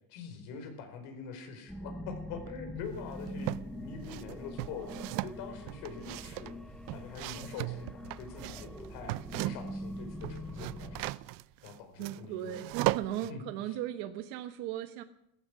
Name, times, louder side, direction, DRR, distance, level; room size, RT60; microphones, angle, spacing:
voice 1, 0.1-11.1 11.6-12.6 13.3-13.4, left 5 dB, 75° left, 6 dB, 4.8 m, -44 dB
sound 1, 1.7-11.1, left 1 dB, ahead, 0.6 m, -44 dB
sound 2, 2.9-3.7 4.1-9.8 10.1-13.3, right 20 dB, 65° right, 0.5 m, -37 dB
voice 2, 12.0-15.0, right 12 dB, 80° right, 8 dB, 1.2 m, -37 dB
16.0 x 14.5 x 6.2 m, 0.79 s
cardioid pair, 155°, 37 cm